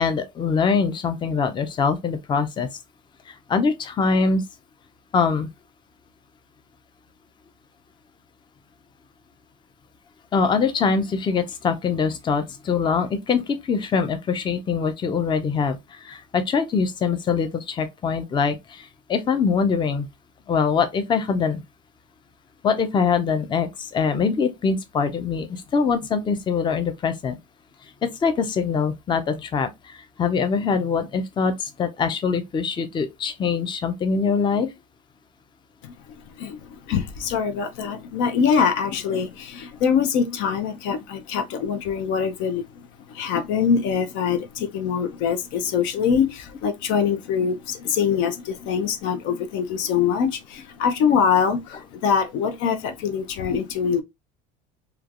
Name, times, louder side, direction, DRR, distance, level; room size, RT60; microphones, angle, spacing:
voice 1, 0.0-2.7 3.3-4.4 5.1-5.5 10.3-20.1 20.5-21.6 22.6-27.4 28.0-34.7, left 5 dB, 20° left, 0.5 m, -23 dB
voice 2, 36.4-54.0, left 7 dB, 70° left, 0.6 m, -24 dB
3.1 x 2.3 x 2.4 m
supercardioid pair, 110°, 21 cm